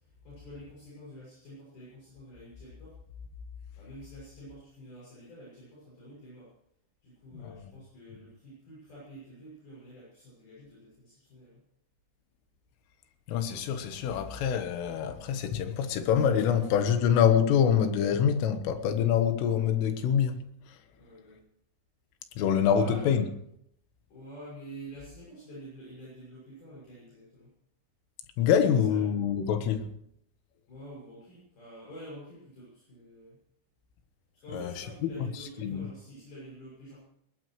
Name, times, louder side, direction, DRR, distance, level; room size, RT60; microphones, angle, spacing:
voice 1, 0.0-3.0 3.8-6.5 7.0-11.6 20.9-21.4 22.7-23.3 24.1-27.5 28.6-29.0 30.7-33.4 34.3-37.0, right 1 dB, 50° left, 8.3 m, -48 dB
voice 2, 7.3-7.7 13.3-20.4 20.7-20.8 22.4-23.3 28.4-29.9 34.5-35.1 35.6-35.9, left 8 dB, 90° left, 3.9 m, -26 dB
20.5 x 20.0 x 3.2 m
omnidirectional pair, 5.6 m